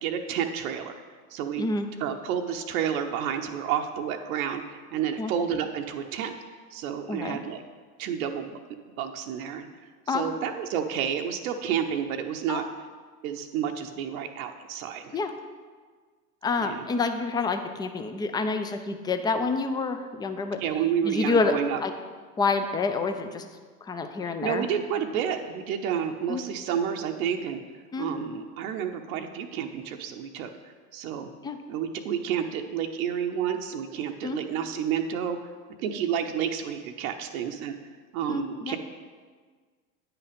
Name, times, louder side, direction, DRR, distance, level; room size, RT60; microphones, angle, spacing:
voice 1, 0.0-0.9 1.3-1.7 2.0-6.4 6.7-7.6 8.0-8.6 9.0-9.7 10.1-12.6 13.2-15.2 16.6-16.8 20.6-21.8 24.2-27.6 28.0-30.5 30.9-31.3 31.7-35.4 35.8-37.7 38.1-38.8, right 8 dB, 60° right, 4 dB, 0.8 m, -30 dB
voice 2, 1.6-1.9 5.2-5.3 7.1-7.4 10.1-10.3 12.5-12.6 15.1-15.4 16.4-20.6 21.0-21.9 22.4-23.5 23.8-24.7 26.3-26.4 27.9-28.1 31.4-31.6 34.2-34.4 38.3-38.8, left 4 dB, 10° left, 7 dB, 0.3 m, -28 dB
9.3 x 5.9 x 5.1 m, 1.5 s
hypercardioid pair, 85°, 47 cm